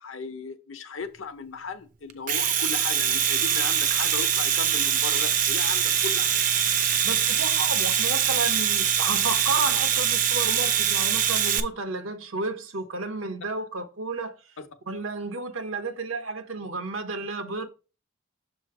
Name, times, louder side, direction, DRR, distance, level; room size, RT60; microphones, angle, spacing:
voice 1, 0.0-6.4 14.6-14.7, left 4 dB, 80° left, 0.8 m, -36 dB
Domestic sounds home sounds, 2.1-11.6, right 9 dB, 40° right, 0.4 m, -23 dB
voice 2, 7.0-14.3 14.9-17.7, right 3 dB, 90° right, 1.0 m, -32 dB
6.7 x 3.1 x 4.8 m
head